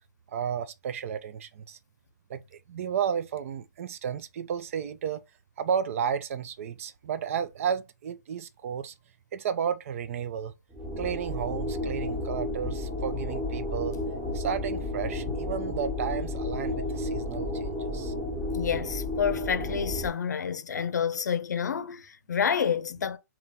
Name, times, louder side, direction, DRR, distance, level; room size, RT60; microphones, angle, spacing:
voice 1, 0.3-1.8 2.3-5.2 5.6-8.9 9.3-10.5 11.0-14.0 14.3-18.1, right 8 dB, 50° right, 0.6 m, -32 dB
sound 1, 10.7-20.1, left 1 dB, 10° right, 1.2 m, -32 dB
voice 2, 18.5-23.2, left 7 dB, 70° left, 0.6 m, -29 dB
3.4 x 3.0 x 3.5 m
hypercardioid pair, 135°, 10 cm